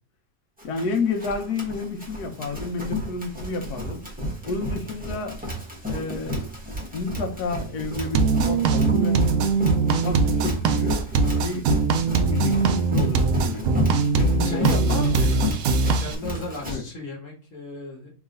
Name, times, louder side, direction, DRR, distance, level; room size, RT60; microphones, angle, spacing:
voice 1, 0.6-4.0 4.4-5.4 5.9-6.5 6.9-9.3 10.0-11.1 11.4-11.7 12.3-13.7 14.1-15.3 16.7-16.8, left 4 dB, 80° left, 1.4 m, -30 dB
Run, 0.6-16.8, left 1 dB, 5° right, 1.0 m, -32 dB
sound 1, 8.1-16.2, right 4 dB, 70° right, 0.9 m, -21 dB
voice 2, 14.4-15.5 16.0-18.1, left 2 dB, 55° left, 1.4 m, -35 dB
3.6 x 3.1 x 3.7 m
omnidirectional pair, 1.7 m